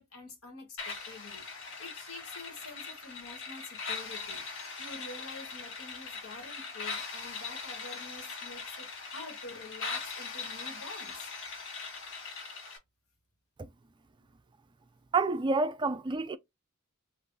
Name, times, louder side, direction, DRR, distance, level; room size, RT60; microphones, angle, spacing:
voice 1, 0.0-1.5 1.8-4.4 4.8-11.3, left 2 dB, 90° left, 1.5 m, -47 dB
sound 1, 0.8-12.8, left 4 dB, 65° left, 1.4 m, -40 dB
voice 2, 15.1-16.4, right 3 dB, 20° right, 0.3 m, -28 dB
3.7 x 2.5 x 2.6 m
head